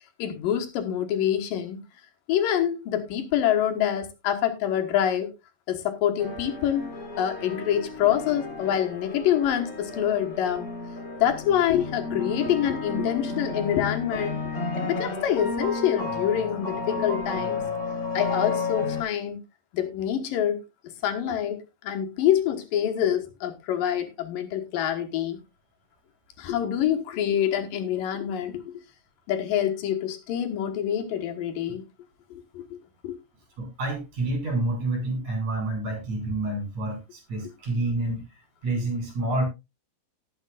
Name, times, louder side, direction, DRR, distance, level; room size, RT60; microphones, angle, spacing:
voice 1, 0.2-1.8 2.3-5.3 5.7-6.9 7.2-10.7 11.2-14.4 14.8-17.6 18.1-19.4 19.7-20.6 21.0-25.4 26.4-28.7 29.3-31.8 32.3-32.8 33.0-33.2, left 10 dB, 75° left, 5 dB, 3.0 m, -26 dB
sound 1, 6.2-19.0, left 3 dB, 30° left, 3.0 m, -32 dB
voice 2, 33.6-39.4, right 2 dB, 50° right, 3 dB, 6.6 m, -28 dB
18.5 x 7.2 x 2.4 m, 0.24 s
omnidirectional pair, 4.1 m